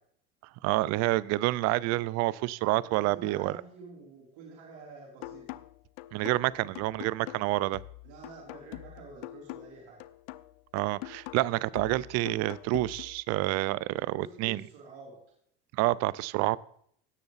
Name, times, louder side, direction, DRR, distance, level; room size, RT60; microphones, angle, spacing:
voice 1, 0.6-3.5 6.1-7.8 10.7-14.6 15.7-16.6, right 18 dB, 55° right, 22 dB, 0.5 m, -28 dB
voice 2, 2.8-5.6 8.0-10.0 14.1-15.2, right 3 dB, 75° right, -3 dB, 3.7 m, -48 dB
sound 1, 5.2-13.2, left 18 dB, 75° left, 0.6 m, -44 dB
17.0 x 6.8 x 4.0 m, 0.67 s
supercardioid pair, 120°, 31 cm